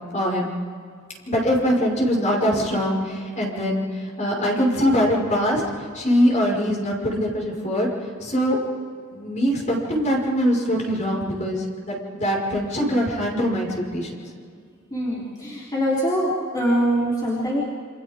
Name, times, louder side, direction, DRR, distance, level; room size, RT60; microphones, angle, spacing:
voice 1, 0.1-0.5 1.3-5.6 5.9-7.9 8.2-8.6 9.1-14.2, equal, 35° left, -2 dB, 5.5 m, -22 dB
voice 2, 14.9-17.6, equal, 20° left, -7 dB, 3.7 m, -23 dB
28.5 x 27.0 x 3.8 m, 2.1 s
head